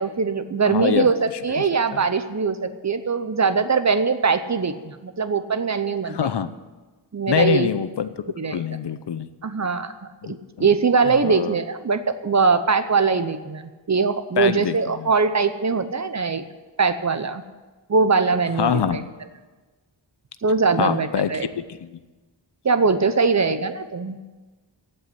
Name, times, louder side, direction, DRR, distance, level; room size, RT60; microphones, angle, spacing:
voice 1, 0.0-6.2 7.1-7.7 8.4-8.6 9.4-9.9 10.3-16.4 16.8-17.4 17.9-19.0 20.4-21.5 22.6-24.2, right 5 dB, 40° right, 10 dB, 0.8 m, -21 dB
voice 2, 0.7-1.1 1.6-1.7 1.9-2.0 6.0-6.5 7.3-8.1 8.4-9.3 10.2-10.7 11.1-11.5 14.4-15.1 18.6-19.1 20.8-22.0, left 8 dB, 65° left, 13 dB, 0.8 m, -25 dB
15.5 x 5.6 x 9.9 m, 1.2 s
wide cardioid pair, 110°, 44 cm